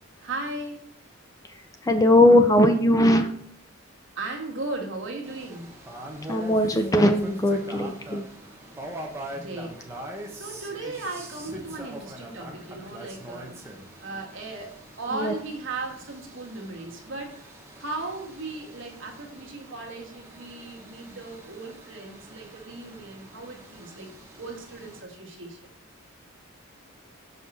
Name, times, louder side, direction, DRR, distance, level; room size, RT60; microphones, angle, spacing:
voice 1, 0.2-0.8 4.1-5.7 9.3-9.8 10.3-24.1 24.4-25.7, right 2 dB, 60° right, 0 dB, 1.5 m, -37 dB
voice 2, 1.8-3.3 6.3-8.2 15.1-15.3, left 1 dB, 15° left, 6 dB, 0.4 m, -19 dB
sound 1, 5.2-25.0, right 1 dB, 10° right, 0.9 m, -43 dB
6.4 x 5.4 x 4.2 m, 0.64 s
head